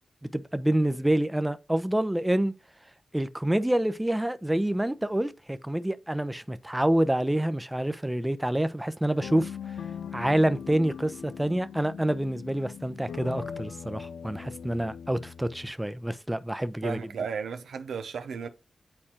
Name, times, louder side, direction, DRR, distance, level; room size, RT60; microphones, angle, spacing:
voice 1, 0.3-2.5 3.1-9.5 10.1-17.0, right 1 dB, 10° right, 0.6 m, -27 dB
sound 1, 9.2-15.7, left 7 dB, 85° left, 0.3 m, -40 dB
voice 2, 16.8-18.5, right 6 dB, 90° right, 0.5 m, -34 dB
8.7 x 4.3 x 2.9 m
cardioid pair, 45°, 0 cm